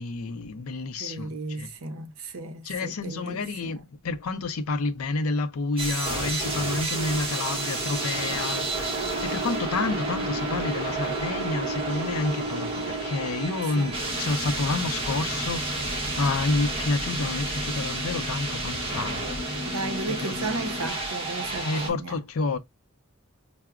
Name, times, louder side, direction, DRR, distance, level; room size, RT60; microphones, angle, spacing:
voice 1, 0.0-1.7 2.6-19.2 20.1-20.5 21.6-22.6, left 3 dB, 70° left, 0.5 m, -29 dB
voice 2, 1.0-3.8 13.8-14.0 19.6-22.2, right 3 dB, 65° right, 0.6 m, -34 dB
sound 1, 5.8-21.9, right 2 dB, 25° right, 0.9 m, -30 dB
5.7 x 2.0 x 2.3 m
head